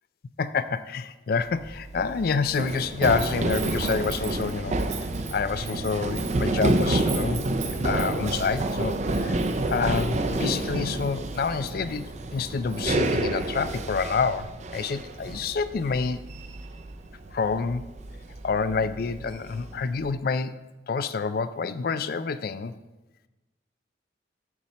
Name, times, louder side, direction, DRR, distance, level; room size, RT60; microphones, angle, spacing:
voice 1, 0.4-7.4 7.7-8.9 9.2-9.4 9.7-16.2 17.3-17.9 18.4-20.6 20.9-22.7, left 5 dB, 50° left, 13 dB, 0.3 m, -28 dB
Run, 1.5-20.1, right 2 dB, 40° right, 0.5 m, -29 dB
7.2 x 4.2 x 6.6 m, 1.1 s
head